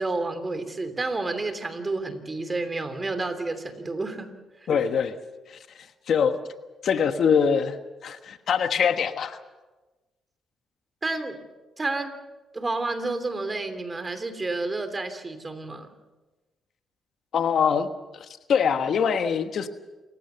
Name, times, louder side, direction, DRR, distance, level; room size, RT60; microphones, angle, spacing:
voice 1, 0.0-4.3 4.6-4.8 11.0-11.4 11.8-12.1 12.5-15.9, right 3 dB, 25° right, 9 dB, 3.0 m, -30 dB
voice 2, 4.7-5.1 5.5-5.6 6.1-6.4 6.8-7.8 8.0-9.4 17.3-17.9 18.5-19.7, left 7 dB, 60° left, 9 dB, 1.3 m, -23 dB
28.0 x 16.0 x 6.9 m, 1.2 s
cardioid pair, 90°, 0 cm